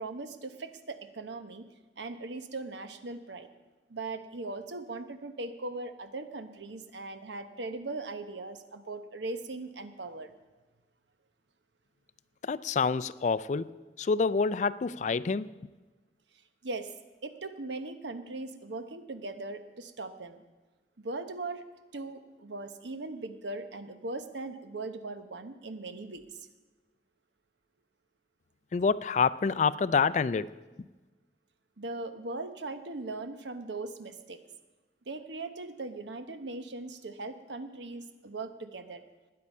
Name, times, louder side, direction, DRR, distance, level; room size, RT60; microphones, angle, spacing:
voice 1, 0.0-1.6 2.0-3.5 3.9-10.3 16.6-16.9 17.2-20.4 21.0-21.6 21.9-26.5 31.8-34.4 35.1-39.0, right 2 dB, 80° right, 9 dB, 1.0 m, -39 dB
voice 2, 12.5-13.7 14.0-15.5 28.7-30.5, left 5 dB, 40° left, 17 dB, 0.3 m, -27 dB
20.5 x 8.7 x 5.4 m, 1.2 s
head